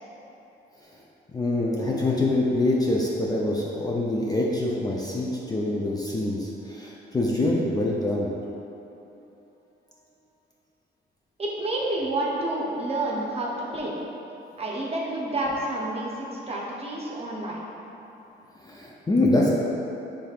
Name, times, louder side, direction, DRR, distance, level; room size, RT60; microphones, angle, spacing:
voice 1, 1.3-8.3 8.7-8.8 18.6-19.5, left 2 dB, 20° left, -4 dB, 0.4 m, -25 dB
voice 2, 11.4-14.0 14.6-17.6, right 1 dB, 30° right, -3 dB, 0.7 m, -29 dB
5.1 x 3.2 x 2.4 m, 3.0 s
cardioid pair, 90°, 20 cm